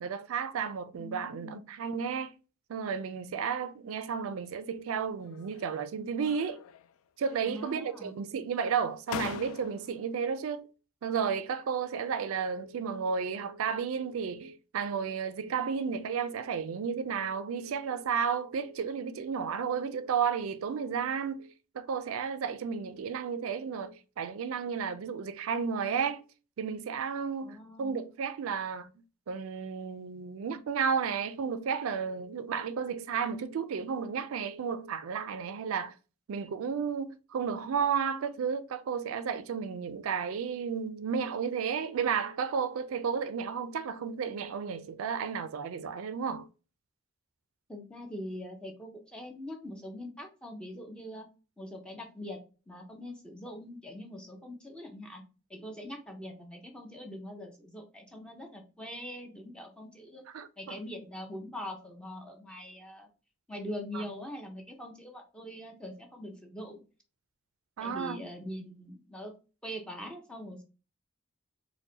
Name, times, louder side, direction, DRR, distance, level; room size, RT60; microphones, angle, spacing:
voice 1, 0.0-2.4 2.7-6.6 7.2-10.7 11.0-26.2 26.6-28.9 29.3-35.9 36.3-46.5 60.3-60.8 63.9-64.1 67.8-68.2, right 6 dB, 85° right, 0.4 m, -33 dB
voice 2, 0.9-1.6 7.5-8.2 27.4-28.0 47.7-51.3 51.6-52.4 52.7-55.2 55.5-60.3 60.6-63.1 63.5-66.8 67.8-69.3 69.6-70.6, left 1 dB, 5° left, 0.6 m, -43 dB
sound 1, 5.2-5.8 6.2-7.0 7.3-8.0 8.7-8.8 9.1-10.0, left 8 dB, 90° left, 0.3 m, -42 dB
4.6 x 2.1 x 2.7 m
head